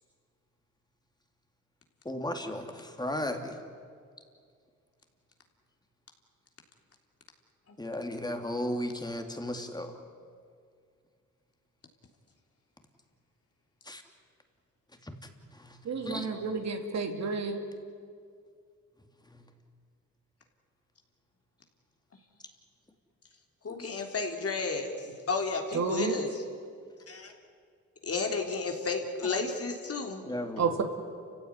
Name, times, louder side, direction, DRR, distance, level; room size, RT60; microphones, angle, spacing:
voice 1, 2.0-3.5 7.8-9.9 13.9-14.0 15.0-15.1 15.5-15.8 16.0-16.3 19.3-19.4 30.2-30.7, left 1 dB, 15° left, 5 dB, 3.2 m, -35 dB
voice 2, 15.8-17.7 25.7-26.2 30.6-30.8, right 5 dB, 60° right, 5 dB, 2.8 m, -30 dB
voice 3, 23.6-26.4 27.1-27.3 28.0-30.2, left 4 dB, 50° left, 3 dB, 3.6 m, -32 dB
29.0 x 16.0 x 9.8 m, 2.2 s
cardioid pair, 75°, 30 cm